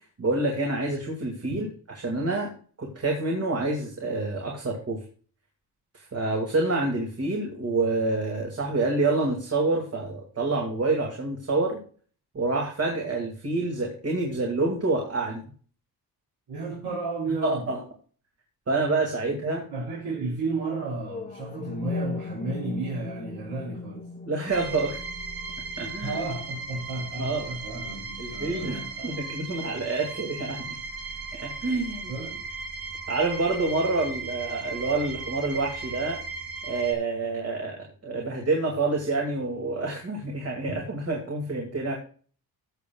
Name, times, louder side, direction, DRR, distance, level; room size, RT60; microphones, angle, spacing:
voice 1, 0.2-1.7 2.0-2.5 2.8-5.0 5.9-11.8 12.3-15.4 17.4-17.8 18.7-19.6 24.3-25.0 25.8-26.2 27.2-27.5 28.2-30.8 31.4-32.1 33.1-36.2 36.6-37.8 38.0-41.9, right 3 dB, 40° right, 2.3 m, -27 dB
voice 2, 16.5-17.7 19.3-19.4 19.7-24.1 26.0-29.2 32.1-32.4, right 3 dB, 85° right, 3.8 m, -33 dB
sound 1, 21.0-29.0, left 3 dB, 20° left, 1.0 m, -38 dB
sound 2, 24.5-36.9, right 4 dB, 65° right, 1.8 m, -37 dB
15.5 x 7.1 x 2.3 m
wide cardioid pair, 135°, 38 cm